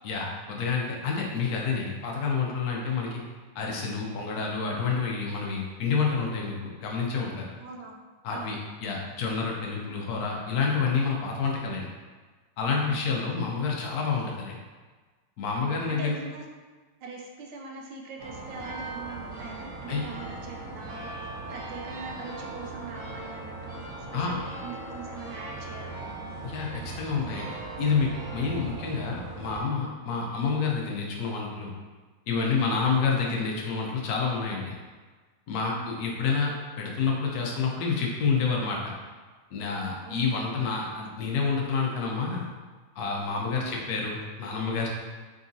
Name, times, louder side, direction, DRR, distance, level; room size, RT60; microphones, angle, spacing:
voice 1, 0.0-3.2 3.5-7.5 8.2-11.9 12.6-14.6 15.4-16.1 19.9-20.0 24.1-24.4 26.4-31.7 32.3-34.8 35.5-36.5 36.8-38.9 39.5-42.5 43.0-44.9, left 5 dB, 65° left, -1 dB, 1.1 m, -28 dB
voice 2, 7.6-8.0 8.3-8.6 12.9-13.3 15.6-16.5 17.0-26.1 32.6-33.0 33.2-33.3 35.7-36.0 40.0-40.2 43.4-43.7, right 4 dB, 80° right, 1 dB, 1.3 m, -42 dB
sound 1, 18.2-29.6, right 3 dB, 50° right, 1.0 m, -39 dB
3.8 x 3.6 x 2.6 m, 1.4 s
omnidirectional pair, 2.0 m